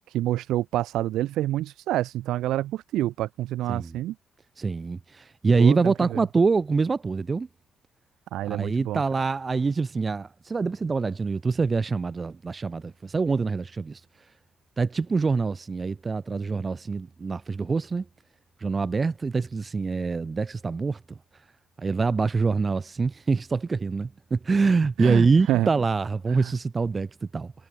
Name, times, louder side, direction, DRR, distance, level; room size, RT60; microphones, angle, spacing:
voice 1, 0.1-4.1 5.6-6.2 8.3-9.0 25.0-25.7 26.3-26.5, right 14 dB, 85° right, 1.3 m, -27 dB
voice 2, 4.6-7.5 8.4-14.0 14.8-18.0 18.6-21.0 21.8-27.5, right 4 dB, 30° right, 1.0 m, -25 dB
cardioid pair, 90°, 0 cm